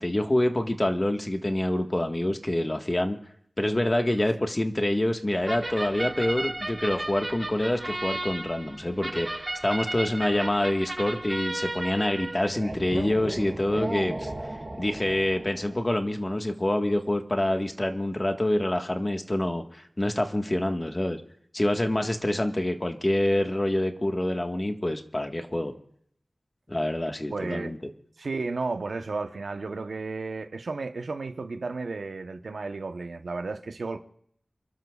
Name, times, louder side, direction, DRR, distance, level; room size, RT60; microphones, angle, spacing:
voice 1, 0.0-3.2 3.6-14.3 14.7-21.2 21.5-25.7 26.7-27.8, left 1 dB, 30° left, 1.5 m, -26 dB
sound 1, 5.4-15.8, right 1 dB, 30° right, 5.3 m, -34 dB
voice 2, 27.3-27.7 28.2-34.0, right 3 dB, 85° right, 0.9 m, -33 dB
29.5 x 12.0 x 2.4 m
wide cardioid pair, 50°, 0 cm